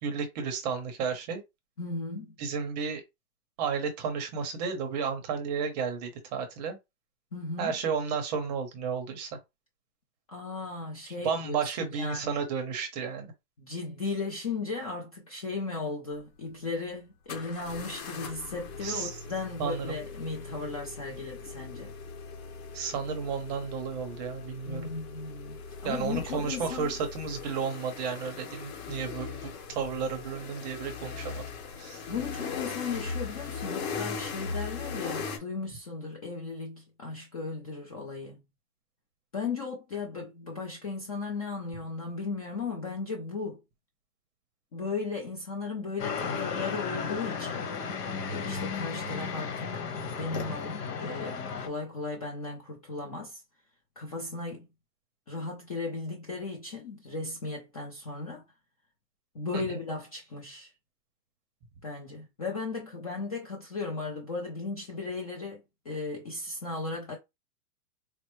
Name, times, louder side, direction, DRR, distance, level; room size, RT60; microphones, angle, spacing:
voice 1, 0.0-1.4 2.4-3.0 3.6-6.8 7.6-9.3 11.1-13.3 18.8-19.1 19.6-20.0 22.7-24.9 25.8-31.5 31.8-32.0, right 6 dB, 25° right, 0.6 m, -32 dB
voice 2, 1.8-2.3 7.3-7.8 10.3-12.5 13.6-21.9 24.6-26.9 32.1-38.4 39.3-43.6 44.7-47.6 47.9-49.7 50.2-53.4 54.0-54.7 55.3-58.4 59.3-60.7 61.8-67.2, left 4 dB, 25° left, 0.4 m, -36 dB
sound 1, 16.1-16.2 17.3-35.4, left 5 dB, 60° left, 1.4 m, -39 dB
sound 2, 46.0-51.7, left 5 dB, 85° left, 1.2 m, -34 dB
4.3 x 2.0 x 3.0 m
hypercardioid pair, 150°, 47 cm